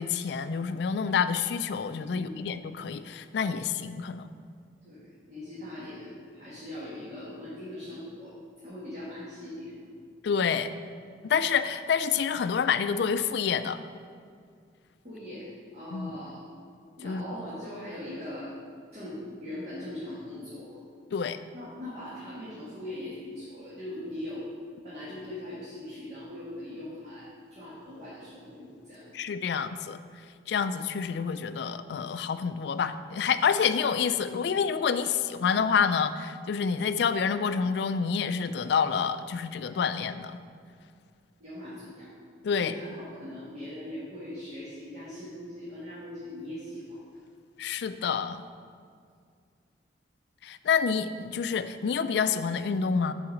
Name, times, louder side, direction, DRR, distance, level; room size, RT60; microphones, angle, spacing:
voice 1, 0.0-4.3 10.2-10.7 11.2-13.8 15.9-16.1 17.0-17.2 21.1-21.4 29.1-30.0 30.5-40.4 42.4-42.7 47.6-48.4 50.4-53.1, left 6 dB, 65° left, 12 dB, 0.3 m, -28 dB
voice 2, 2.1-2.5 4.8-9.7 15.0-16.5 17.0-18.5 18.9-20.8 21.5-24.5 24.8-29.1 41.4-42.1 42.5-47.0, left 1 dB, 35° right, -10 dB, 1.5 m, -41 dB
5.7 x 4.8 x 6.4 m, 2.2 s
head